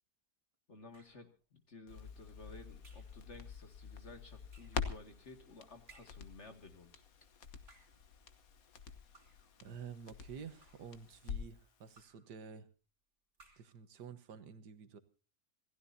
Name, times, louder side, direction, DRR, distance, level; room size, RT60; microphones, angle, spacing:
voice 1, 0.7-7.0, left 2 dB, 45° left, 6 dB, 2.4 m, -55 dB
sound 1, 0.9-1.3 2.8-3.2 4.5-4.9 5.9-6.3 7.5-8.1 9.1-9.6 10.4-11.0 11.9-12.3 13.3-13.8, right 3 dB, 45° right, 3.4 m, -64 dB
Crackle, 1.9-11.7 12.0-12.1, left 6 dB, 60° left, 1.6 m, -47 dB
voice 2, 9.6-12.7 13.6-15.0, right 6 dB, 85° right, 12 dB, 1.8 m, -50 dB
26.5 x 16.0 x 2.8 m, 0.36 s
omnidirectional pair, 1.7 m